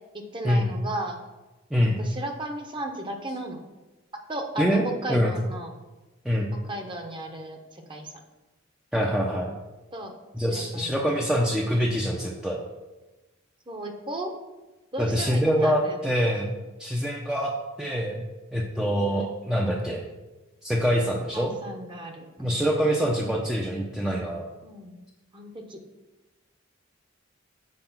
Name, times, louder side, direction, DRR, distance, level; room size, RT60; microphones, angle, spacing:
voice 1, 0.1-1.2 2.0-3.6 4.3-5.7 6.7-8.1 9.9-11.2 13.7-14.3 14.9-16.0 19.0-19.2 21.3-22.7 24.6-25.0 25.3-25.8, right 1 dB, 25° right, 3 dB, 0.9 m, -35 dB
voice 2, 8.9-9.5 10.3-12.6 15.0-16.5 16.8-17.5 17.8-18.2 18.5-20.0 20.6-21.5 22.4-24.5, equal, 5° right, -2 dB, 0.6 m, -25 dB
7.8 x 4.8 x 5.9 m, 1.1 s
head